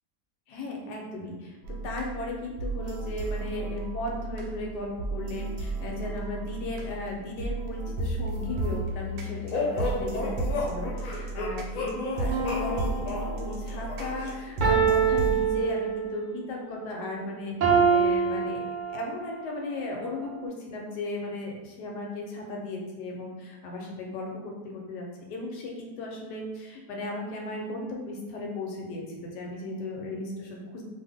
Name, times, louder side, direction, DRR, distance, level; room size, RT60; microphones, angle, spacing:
voice 1, 0.5-18.7 18.9-30.8, left 2 dB, 80° left, 0 dB, 1.2 m, -36 dB
sound 1, 1.6-15.5, right 2 dB, 80° right, 1.2 m, -34 dB
sound 2, 9.5-14.3, left 3 dB, 65° left, 1.0 m, -32 dB
sound 3, 12.3-13.6 14.6-16.3 17.6-19.3 20.0-20.1, right 6 dB, 60° right, 0.5 m, -25 dB
2.6 x 2.4 x 3.4 m, 1.2 s
omnidirectional pair, 1.8 m